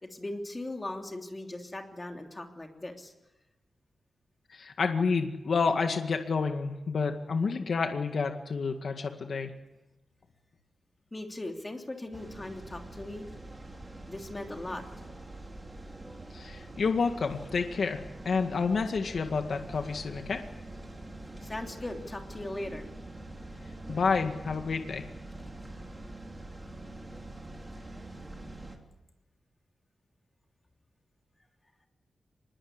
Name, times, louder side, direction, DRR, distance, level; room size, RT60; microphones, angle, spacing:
voice 1, 0.0-3.1 11.1-13.2 14.1-14.8 21.4-22.9, left 1 dB, 20° left, 3 dB, 3.1 m, -39 dB
voice 2, 4.5-9.5 16.3-20.4 23.9-25.1, left 5 dB, 55° left, 5 dB, 1.9 m, -29 dB
sound 1, 12.1-28.8, right 2 dB, 15° right, 3.3 m, -45 dB
25.0 x 21.5 x 9.8 m, 1.0 s
wide cardioid pair, 160°, 0 cm